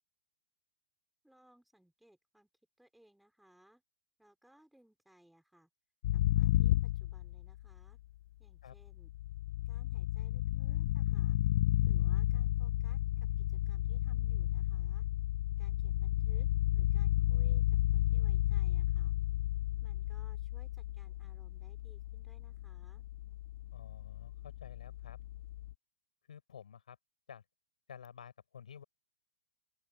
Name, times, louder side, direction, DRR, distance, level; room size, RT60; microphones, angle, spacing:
voice 1, 1.2-2.5 2.8-3.8 4.2-5.7 6.1-8.0 8.4-9.1 9.7-11.4 11.9-13.0 13.4-15.1 15.6-16.5 16.7-19.1 19.8-23.0, right 1 dB, ahead, 5.3 m, -65 dB
sound 1, 6.0-7.8 8.8-25.7, left 15 dB, 55° left, 0.6 m, -32 dB
voice 2, 23.7-25.2 26.3-27.0 27.3-27.4 27.9-28.8, left 8 dB, 85° left, 6.8 m, -51 dB
open air
hypercardioid pair, 135°, 4 cm